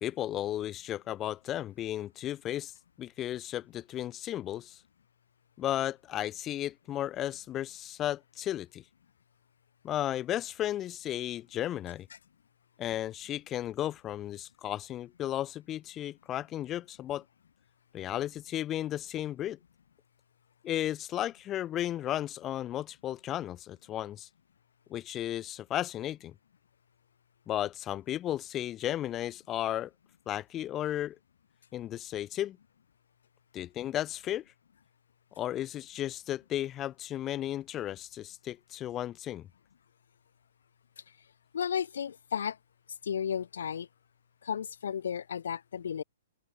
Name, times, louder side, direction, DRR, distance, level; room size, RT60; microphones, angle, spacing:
voice 1, 0.0-2.7 3.0-4.8 5.6-8.8 9.8-12.1 12.8-17.2 17.9-19.6 20.6-24.3 24.9-26.3 27.5-29.9 30.3-31.2 31.7-32.6 33.5-34.4 35.4-39.5, left 12 dB, 25° left, 0.8 m, -34 dB
voice 2, 41.5-42.6 43.0-43.9 44.4-46.0, left 8 dB, 75° left, 4.3 m, -33 dB
open air
hypercardioid pair, 125°, 0 cm